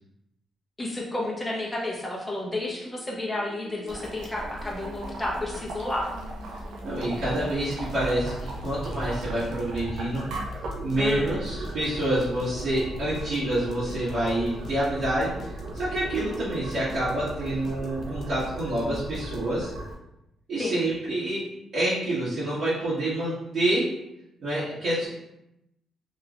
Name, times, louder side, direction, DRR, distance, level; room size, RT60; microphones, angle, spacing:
voice 1, 0.8-6.1 11.0-11.4 20.6-20.8, left 2 dB, 15° left, -3 dB, 0.9 m, -31 dB
sound 1, 1.6-11.7, equal, 35° right, 1.0 m, -45 dB
Boiling, 3.9-19.9, right 1 dB, 90° right, 0.6 m, -38 dB
voice 2, 6.8-10.2 10.8-19.7 20.5-21.5 21.7-23.9 24.4-25.1, right 1 dB, 60° right, -13 dB, 1.5 m, -27 dB
sound 2, 7.5-19.7, right 1 dB, 60° left, 0.6 m, -43 dB
3.1 x 2.9 x 2.5 m, 0.85 s
cardioid pair, 95°, 0 cm